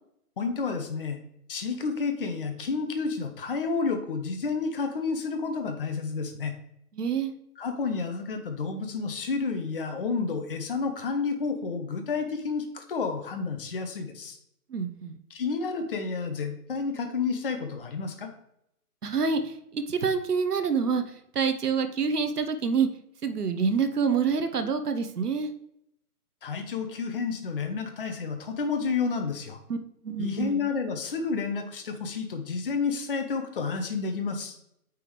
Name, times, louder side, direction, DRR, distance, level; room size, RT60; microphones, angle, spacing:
voice 1, 0.4-1.2 1.5-6.5 7.6-14.4 15.3-18.3 26.4-29.6 30.2-34.6, left 4 dB, 35° left, 6 dB, 0.7 m, -30 dB
voice 2, 6.9-7.3 14.7-15.2 19.0-21.0 21.3-22.9 23.2-25.5 29.7-29.8 30.0-30.7, right 5 dB, 80° right, 9 dB, 1.0 m, -27 dB
9.1 x 3.6 x 3.1 m, 0.76 s
figure-of-eight pair, 145°, 46 cm